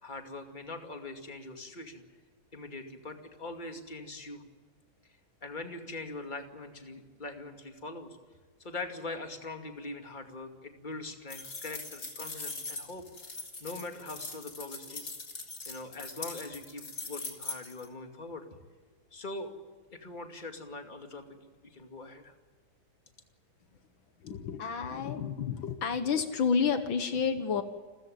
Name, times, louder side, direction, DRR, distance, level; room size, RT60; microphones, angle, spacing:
voice 1, 0.0-2.0 2.5-4.4 5.4-8.2 8.6-13.0 13.6-15.1 15.7-18.5 19.1-19.6 19.9-21.2 21.6-22.3, left 2 dB, 25° left, 4 dB, 2.5 m, -42 dB
sound 1, 11.3-17.9, left 3 dB, 50° left, 3.9 m, -41 dB
voice 2, 24.2-27.6, left 6 dB, 75° left, 9 dB, 2.1 m, -30 dB
29.0 x 15.0 x 9.4 m, 1.4 s
omnidirectional pair, 2.2 m